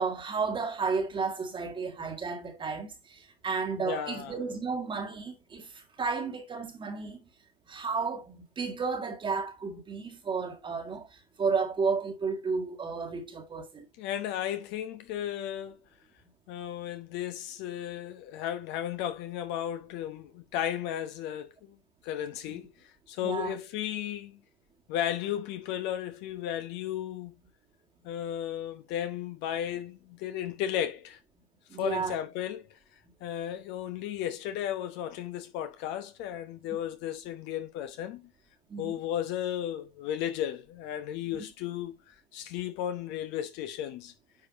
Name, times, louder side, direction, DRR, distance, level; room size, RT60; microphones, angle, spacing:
voice 1, 0.0-7.2 7.7-13.9 22.5-22.6 23.2-23.5 31.7-32.2 38.7-39.0, right 5 dB, 15° right, 1.8 m, -32 dB
voice 2, 3.8-4.3 14.0-15.8 16.5-21.7 22.0-22.7 23.1-24.4 24.9-27.3 28.0-31.2 31.8-32.6 33.2-38.3 38.8-41.9 42.3-44.1, left 11 dB, 35° left, 1.0 m, -34 dB
9.8 x 4.7 x 2.8 m
hypercardioid pair, 115°, 31 cm